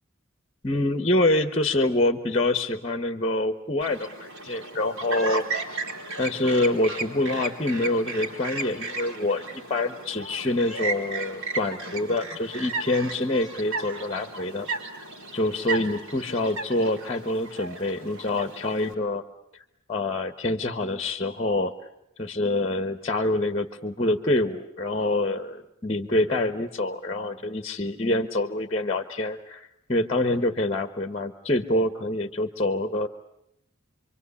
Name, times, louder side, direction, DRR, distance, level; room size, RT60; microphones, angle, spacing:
voice 1, 0.6-5.6 6.2-14.7 15.3-19.2 19.9-21.7 22.2-33.1, left 2 dB, 30° left, 9 dB, 1.3 m, -26 dB
Chirp tweet, 3.8-18.9, right 3 dB, 75° right, 4.6 m, -35 dB
27.0 x 24.5 x 8.4 m, 0.80 s
head